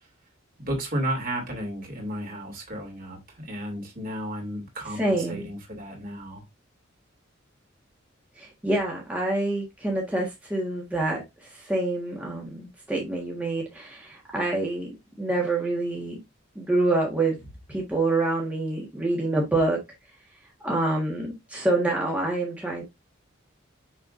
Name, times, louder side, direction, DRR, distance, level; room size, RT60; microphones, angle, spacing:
voice 1, 0.6-6.4, right 1 dB, 45° right, 2.7 m, -33 dB
voice 2, 5.0-5.5 8.4-11.2 11.5-14.9 15.2-16.2 16.5-17.4 17.7-19.8 20.6-22.8, right 2 dB, 5° right, 1.5 m, -26 dB
6.5 x 5.9 x 2.5 m
head